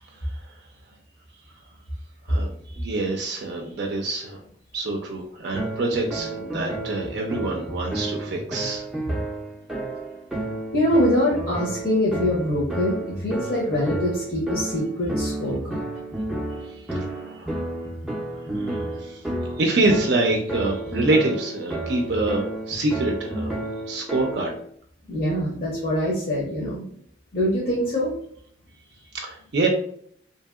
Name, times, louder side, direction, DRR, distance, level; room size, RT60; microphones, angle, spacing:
voice 1, 0.1-0.6 2.3-4.4 4.7-8.9 16.6-17.7 18.5-19.2 19.6-23.6 23.9-24.5 29.0-29.7, right 2 dB, 60° right, 2 dB, 0.4 m, -26 dB
sound 1, 5.5-24.6, right 2 dB, 5° right, 0.5 m, -31 dB
voice 2, 10.7-15.8 25.1-26.8 27.3-28.1, left 1 dB, 50° left, -6 dB, 0.7 m, -24 dB
2.8 x 2.7 x 2.3 m, 0.63 s
head